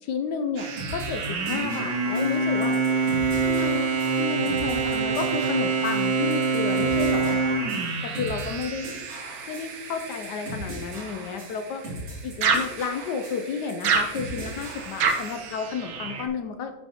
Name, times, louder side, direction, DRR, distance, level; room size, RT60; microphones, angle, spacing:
voice 1, 0.0-2.8 3.4-7.4 8.0-8.9 9.5-11.8 12.2-16.7, left 6 dB, 70° left, 7 dB, 1.0 m, -32 dB
sound 1, 0.6-12.1 12.4-16.3, right 4 dB, 85° right, 1.8 m, -27 dB
sound 2, 0.8-15.4, right 1 dB, 55° right, 3.3 m, -39 dB
12.0 x 5.4 x 2.9 m, 1.3 s
omnidirectional pair, 2.2 m